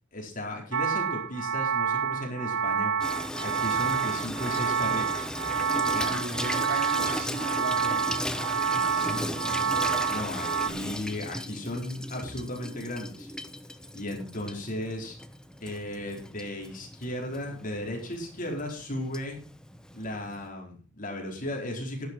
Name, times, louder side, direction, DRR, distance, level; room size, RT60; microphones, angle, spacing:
voice 1, 0.1-2.9 3.4-5.2 5.8-6.2 8.9-9.3 10.1-13.3 13.9-15.2 15.6-19.4 19.9-22.1, left 1 dB, 40° left, 0 dB, 4.7 m, -35 dB
sound 1, 0.7-10.7, right 6 dB, 80° right, 0.9 m, -28 dB
Water tap faucet / Sink (filling or washing), 3.0-20.5, left 1 dB, 5° left, 1.0 m, -37 dB
voice 2, 5.9-8.4 9.0-9.8, right 2 dB, 50° right, 1 dB, 5.2 m, -38 dB
12.5 x 11.5 x 4.6 m, 0.37 s
head